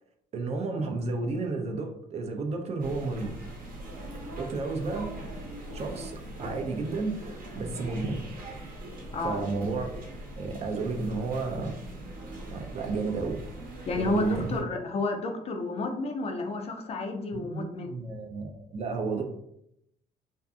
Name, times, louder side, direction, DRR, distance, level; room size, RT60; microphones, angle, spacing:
voice 1, 0.3-3.3 4.4-5.1 5.7-8.2 9.2-9.9 10.4-11.7 12.5-13.4 13.9-14.6 17.3-19.2, right 3 dB, 40° right, 3 dB, 0.5 m, -32 dB
sound 1, 2.8-14.6, right 1 dB, 55° right, 0.8 m, -41 dB
voice 2, 9.1-9.4 13.9-17.9, left 2 dB, 35° left, 4 dB, 0.4 m, -31 dB
2.6 x 2.4 x 2.3 m, 0.76 s
cardioid pair, 110°, 17 cm